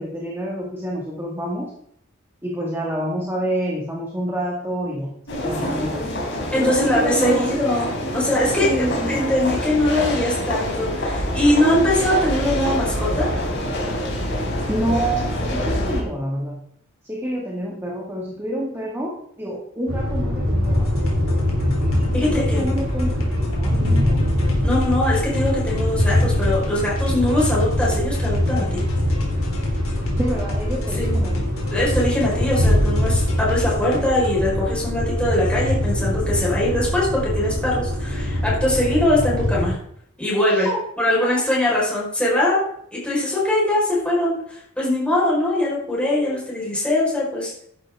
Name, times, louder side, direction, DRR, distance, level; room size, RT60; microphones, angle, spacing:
voice 1, 0.0-1.7 2.4-6.1 6.5-7.5 8.6-9.1 14.7-16.6 17.0-20.9 21.9-23.3 23.5-24.1 30.2-31.5 40.4-40.8 41.2-41.3, right 1 dB, 10° right, -3 dB, 2.2 m, -28 dB
sound 1, 5.3-16.0, left 1 dB, 60° left, 4.0 m, -25 dB
voice 2, 6.5-13.3 22.1-22.7 24.6-28.8 31.0-31.2 31.7-39.7 40.2-40.7 41.0-47.6, left 1 dB, 5° left, -6 dB, 5.0 m, -22 dB
sound 2, 19.9-39.7, left 1 dB, 80° right, 3.2 m, -22 dB
sound 3, 20.6-34.4, left 1 dB, 85° left, 3.4 m, -34 dB
13.0 x 10.5 x 3.8 m, 0.69 s
head